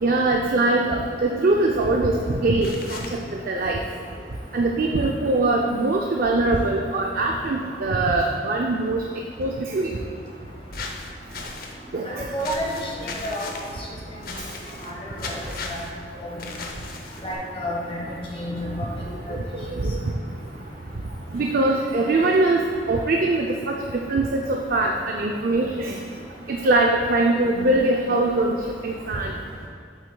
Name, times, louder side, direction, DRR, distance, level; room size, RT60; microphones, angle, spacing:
voice 1, 0.0-3.2 3.5-3.8 4.5-9.0 9.4-10.0 11.9-12.2 19.3-20.0 21.3-22.6 22.9-23.8 24.1-26.0 26.5-28.6 28.8-29.3, right 2 dB, 55° right, 1 dB, 0.5 m, -22 dB
sound 1, 2.6-3.2 10.7-11.7 12.4-13.7 14.2-14.9 15.2-15.9 16.4-17.4, left 3 dB, 55° left, 0.7 m, -36 dB
voice 2, 12.0-13.7 14.8-15.3 15.7-15.8 16.3-16.4 17.2-18.0 18.3-18.6 19.3-19.4 19.7-19.8, equal, 30° left, -3 dB, 1.3 m, -30 dB
8.0 x 7.7 x 2.3 m, 2.4 s
head